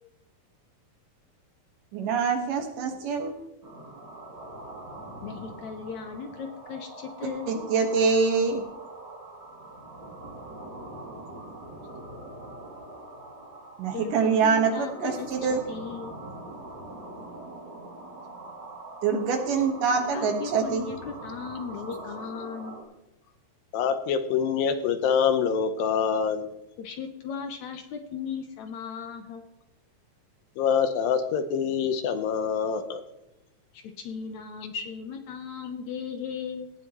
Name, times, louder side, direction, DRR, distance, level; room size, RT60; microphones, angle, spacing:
voice 1, 1.9-3.3 7.2-8.6 13.8-15.6 19.0-20.8, right 5 dB, 70° right, 4 dB, 3.1 m, -25 dB
sound 1, 3.6-22.8, right 2 dB, 35° right, 3.2 m, -43 dB
voice 2, 5.2-7.5 13.8-15.3 15.7-16.1 20.1-22.8 26.8-29.5 33.7-36.7, left 6 dB, 70° left, 6 dB, 2.0 m, -37 dB
voice 3, 23.7-26.5 30.6-33.0, left 7 dB, 85° left, 9 dB, 2.7 m, -25 dB
18.0 x 11.0 x 3.1 m, 0.88 s
omnidirectional pair, 4.0 m